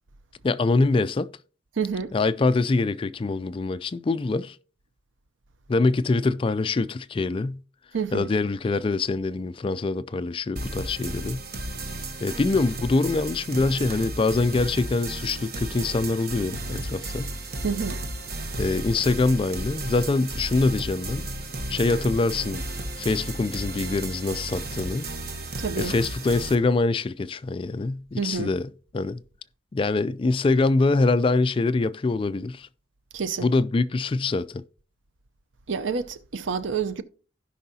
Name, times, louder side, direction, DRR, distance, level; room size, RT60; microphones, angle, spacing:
voice 1, 0.4-1.3 2.1-4.6 5.7-7.6 8.1-11.4 12.2-17.3 18.6-21.3 21.7-22.6 23.0-25.1 25.8-28.7 28.9-29.2 29.7-32.7 33.4-34.6, left 3 dB, 30° left, 0.3 m, -24 dB
voice 2, 1.8-2.1 7.9-8.3 17.6-18.0 25.6-25.9 28.2-28.5 33.1-33.5 35.7-37.0, right 5 dB, 85° right, 0.6 m, -28 dB
sound 1, 10.6-26.6, right 1 dB, 55° right, 1.0 m, -34 dB
16.0 x 5.5 x 2.8 m
head